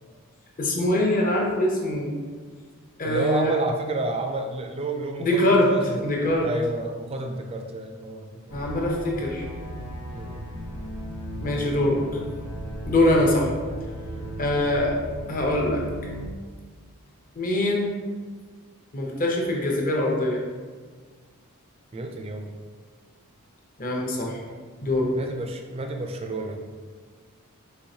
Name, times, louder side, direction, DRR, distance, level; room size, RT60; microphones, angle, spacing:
voice 1, 0.6-2.1 3.0-3.5 5.2-5.7 6.0-6.5 8.5-9.4 11.4-12.0 12.8-13.5 14.4-14.9 15.3-15.8 17.4-17.9 18.9-20.4 23.8-24.4 24.8-25.1, left 1 dB, 40° left, -1 dB, 0.8 m, -23 dB
voice 2, 3.0-6.1 6.4-8.3 10.1-10.4 14.1-14.4 21.9-22.5 25.1-26.6, right 2 dB, 25° right, 4 dB, 0.4 m, -30 dB
sound 1, 8.5-16.3, equal, 90° left, 0.8 m, -36 dB
4.5 x 4.1 x 2.7 m, 1.5 s
head